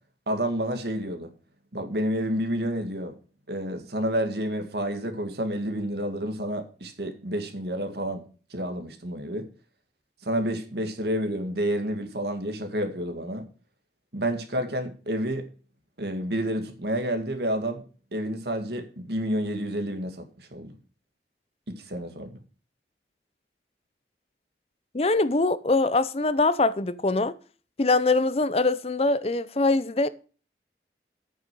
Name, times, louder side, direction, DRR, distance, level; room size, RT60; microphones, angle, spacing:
voice 1, 0.3-1.3 1.7-3.1 3.5-8.2 8.5-9.5 10.2-13.5 14.1-15.5 16.0-17.8 18.1-20.7 21.8-22.4, equal, 70° right, 2.0 m, -29 dB
voice 2, 24.9-27.4 27.8-30.1, left 3 dB, 35° left, 0.6 m, -23 dB
9.2 x 6.6 x 6.1 m
head